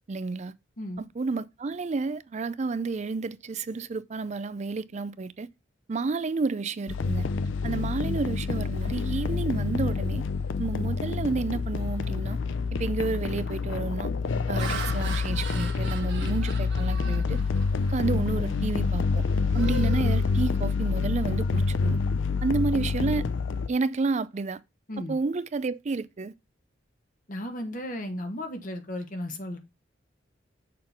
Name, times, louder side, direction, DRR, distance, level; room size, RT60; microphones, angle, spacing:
voice 1, 0.1-0.5 1.0-5.5 5.9-7.3 7.6-10.2 10.6-12.4 12.7-14.1 14.5-17.4 17.9-19.3 19.5-22.0 22.4-23.3 23.7-24.6 25.1-26.3, right 3 dB, 35° right, 0.4 m, -30 dB
sound 1, 6.9-23.7, left 4 dB, 85° left, 0.5 m, -27 dB
Laughter, 12.4-12.7 13.3-13.6 14.2-18.0 18.4-18.7 19.1-21.0, right 4 dB, 60° right, 1.6 m, -41 dB
voice 2, 27.3-29.6, left 1 dB, 45° left, 1.3 m, -35 dB
6.6 x 3.8 x 5.7 m
head